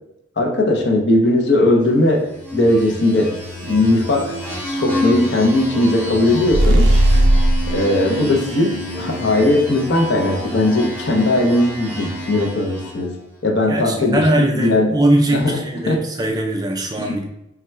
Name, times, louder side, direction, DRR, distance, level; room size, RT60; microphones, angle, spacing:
voice 1, 0.4-2.3 2.5-3.3 3.7-4.4 4.7-6.9 7.7-13.1 13.4-14.9 15.3-15.6 15.9-16.0 17.0-17.1, left 2 dB, 60° left, 1 dB, 0.6 m, -18 dB
sound 1, 2.2-13.1, left 1 dB, 10° left, 0.8 m, -28 dB
sound 2, 6.5-7.7, right 1 dB, 85° right, 0.6 m, -14 dB
voice 2, 13.7-17.2, right 1 dB, 20° right, 2 dB, 0.3 m, -20 dB
3.5 x 2.2 x 4.3 m, 0.86 s
head